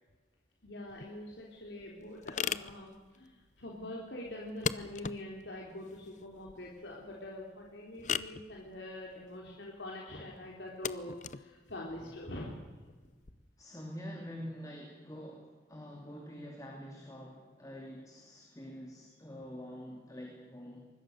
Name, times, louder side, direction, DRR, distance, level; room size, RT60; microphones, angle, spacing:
voice 1, 0.6-12.6, left 1 dB, 75° left, -2 dB, 3.7 m, -44 dB
sound 1, 0.9-13.3, left 7 dB, 40° left, 0.6 m, -42 dB
voice 2, 13.6-20.9, equal, 20° left, 0 dB, 2.8 m, -46 dB
24.5 x 21.0 x 6.6 m, 1.4 s
head